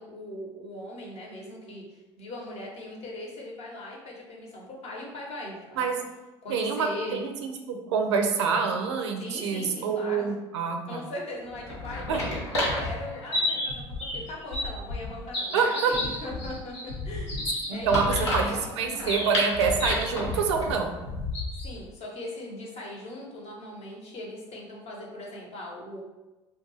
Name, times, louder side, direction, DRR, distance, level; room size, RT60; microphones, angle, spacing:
voice 1, 0.0-5.9 6.4-7.2 9.2-10.3 10.8-12.1 12.5-19.3 21.6-26.0, left 1 dB, 45° left, -2 dB, 0.8 m, -40 dB
voice 2, 6.5-11.0 12.1-12.2 15.5-15.9 17.7-18.0 18.3-20.9, right 5 dB, 85° right, 4 dB, 0.4 m, -26 dB
sound 1, 11.5-21.8, left 1 dB, 90° left, 0.7 m, -31 dB
2.4 x 2.2 x 3.1 m, 1.1 s
hypercardioid pair, 65°, 14 cm